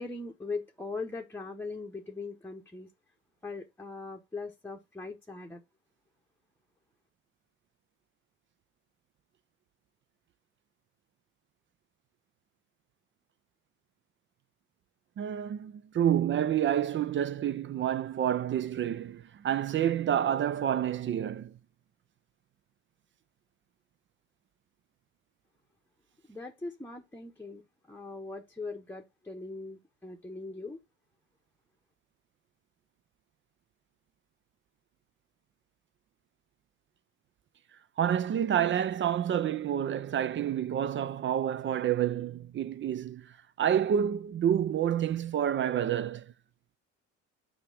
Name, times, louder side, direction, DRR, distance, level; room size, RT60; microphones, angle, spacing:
voice 1, 0.0-2.9 3.4-5.6 26.3-30.8, left 3 dB, 5° left, 0.9 m, -40 dB
voice 2, 15.2-21.5 38.0-46.3, right 10 dB, 35° right, 0.4 m, -29 dB
5.9 x 4.9 x 3.4 m
supercardioid pair, 80°, 33 cm